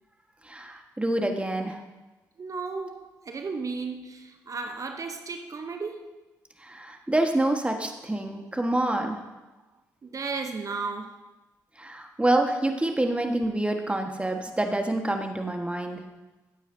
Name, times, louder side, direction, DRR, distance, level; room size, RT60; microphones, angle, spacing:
voice 1, 0.4-1.8 6.6-9.2 11.8-16.0, right 1 dB, 15° right, 1.5 m, -27 dB
voice 2, 2.4-6.1 10.0-11.2 13.0-13.1, right 4 dB, 45° right, 0.9 m, -34 dB
13.5 x 8.9 x 2.8 m
hypercardioid pair, 45°, 8 cm